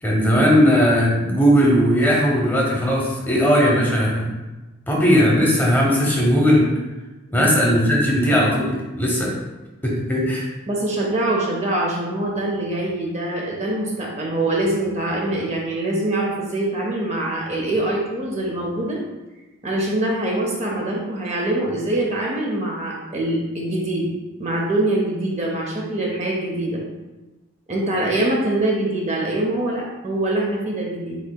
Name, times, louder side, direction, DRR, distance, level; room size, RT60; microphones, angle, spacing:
voice 1, 0.0-4.3 4.9-6.7 7.3-9.3 9.8-10.4, equal, 10° left, -3 dB, 0.8 m, -18 dB
voice 2, 10.7-19.0 19.6-24.1 24.4-26.8 27.7-31.2, right 1 dB, 30° right, -2 dB, 0.6 m, -24 dB
8.2 x 2.8 x 2.2 m, 1.1 s
head